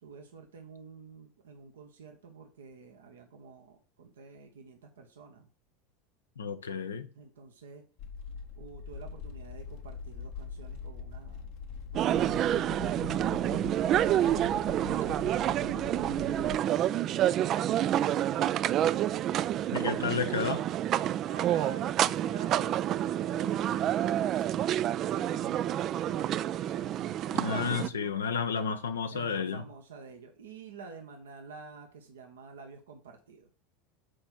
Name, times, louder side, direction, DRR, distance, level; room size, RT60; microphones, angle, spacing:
voice 1, 0.0-5.5 7.1-7.8 8.6-11.6 11.9-12.7 13.5-16.2 16.7-19.2 19.6-20.7 21.2-24.1 25.0-28.2 29.1-33.5, right 5 dB, 75° right, 1.0 m, -49 dB
voice 2, 6.4-7.1 19.7-20.6 27.3-29.6, left 5 dB, 80° left, 0.7 m, -31 dB
sound 1, 8.0-16.6, left 5 dB, 60° left, 1.0 m, -42 dB
sound 2, 11.9-27.9, right 11 dB, 45° right, 0.3 m, -28 dB
6.3 x 4.4 x 6.1 m
hypercardioid pair, 80°, 0 cm